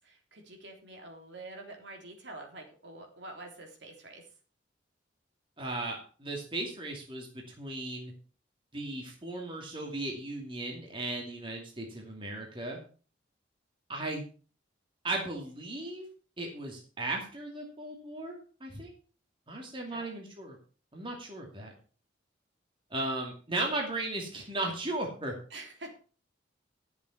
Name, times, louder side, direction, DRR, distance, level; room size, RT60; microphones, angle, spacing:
voice 1, 0.0-4.2 19.9-20.1 25.5-25.9, right 2 dB, 65° right, 2 dB, 3.5 m, -46 dB
voice 2, 5.6-8.1 8.7-12.8 13.9-14.2 15.0-16.1 16.4-18.9 19.5-20.6 20.9-21.7 22.9-25.3, right 2 dB, 25° right, 0 dB, 2.6 m, -36 dB
12.0 x 7.2 x 5.9 m, 0.39 s
head